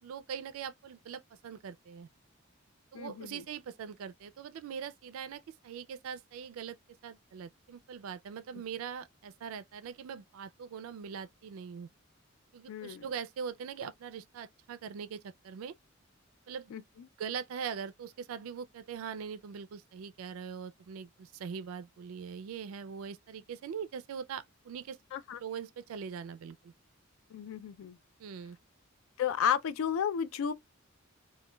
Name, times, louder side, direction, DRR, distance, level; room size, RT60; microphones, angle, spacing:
voice 1, 0.0-2.1 2.9-6.8 7.0-11.9 12.5-15.7 16.5-16.7 17.2-25.0 25.4-26.7 28.2-28.6, right 7 dB, 85° right, 0.3 m, -42 dB
voice 2, 2.9-3.4 8.5-8.6 12.7-13.1 16.7-17.1 25.1-25.4 27.3-28.0 29.2-30.5, left 8 dB, 80° left, 0.3 m, -33 dB
2.2 x 2.2 x 3.0 m
head